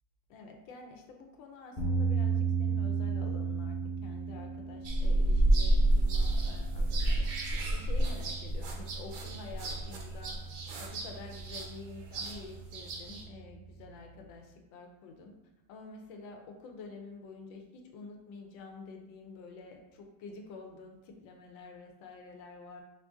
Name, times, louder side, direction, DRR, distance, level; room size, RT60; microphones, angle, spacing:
voice 1, 0.3-10.4 10.8-15.3 15.7-22.8, left 3 dB, 85° left, 3 dB, 1.4 m, -49 dB
sound 1, 1.8-14.3, right 5 dB, 30° left, 1.0 m, -36 dB
sound 2, 4.8-13.2, right 1 dB, 70° right, 1.2 m, -30 dB
4.9 x 2.6 x 3.5 m, 0.94 s
omnidirectional pair, 2.0 m